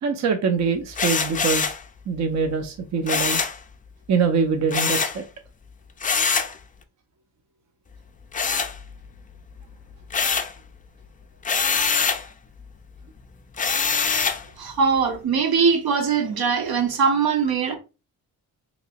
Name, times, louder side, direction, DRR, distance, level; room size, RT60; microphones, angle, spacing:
voice 1, 0.0-1.7 2.1-3.4 4.1-5.2, right 5 dB, 45° right, 0.5 m, -23 dB
sound 1, 0.9-1.8 3.1-3.6 4.7-5.2 6.0-6.5 8.3-9.2 9.6-10.6 11.4-12.3 13.6-14.4, left 5 dB, 25° left, 0.3 m, -24 dB
voice 2, 14.6-17.7, right 5 dB, 70° right, 0.9 m, -21 dB
3.2 x 2.9 x 2.8 m
cardioid pair, 105°, 38 cm